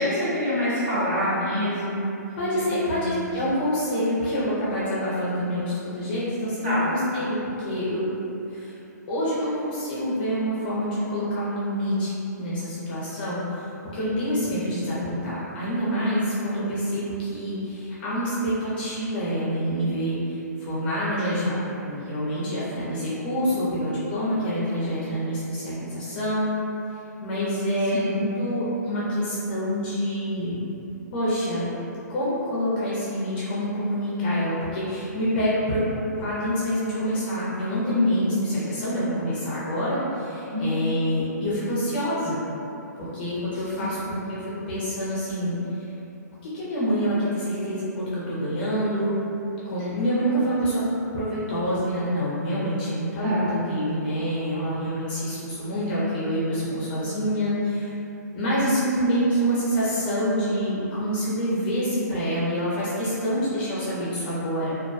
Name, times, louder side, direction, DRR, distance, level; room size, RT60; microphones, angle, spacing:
voice 1, 0.0-2.1 2.9-3.3 6.6-6.9 14.0-14.1 21.2-21.6 27.9-28.2 40.5-40.7 43.5-44.1 53.2-53.6, left 1 dB, 40° right, -11 dB, 1.0 m, -27 dB
voice 2, 2.4-8.1 8.5-8.7 9.1-12.1 12.4-21.6 21.8-26.5 27.2-30.6 31.1-31.7 32.1-42.4 43.0-45.6 46.4-49.1 49.6-50.8 51.1-53.4 53.7-57.9 58.3-64.8, equal, 30° left, -9 dB, 0.5 m, -26 dB
2.3 x 2.1 x 2.5 m, 2.8 s
hypercardioid pair, 160°, 10 cm